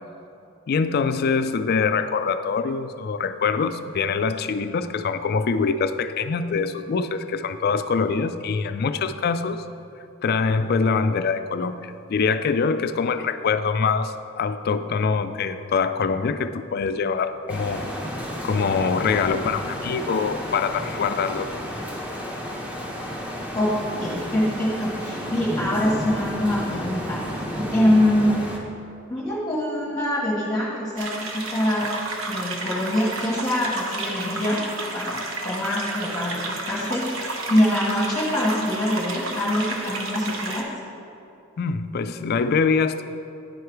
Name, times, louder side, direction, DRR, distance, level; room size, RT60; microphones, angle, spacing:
voice 1, 0.7-9.6 10.2-17.9 18.1-21.5 41.6-43.0, left 5 dB, 50° left, 11 dB, 0.3 m, -24 dB
sound 1, 17.5-28.6, equal, 5° right, 0.9 m, -32 dB
voice 2, 23.5-27.4 27.7-28.4 29.1-31.9 32.3-34.6 34.9-40.7, left 1 dB, 15° left, -8 dB, 1.2 m, -24 dB
sound 2, 31.0-40.6, right 3 dB, 75° right, 0.9 m, -32 dB
10.5 x 4.8 x 4.6 m, 2.8 s
head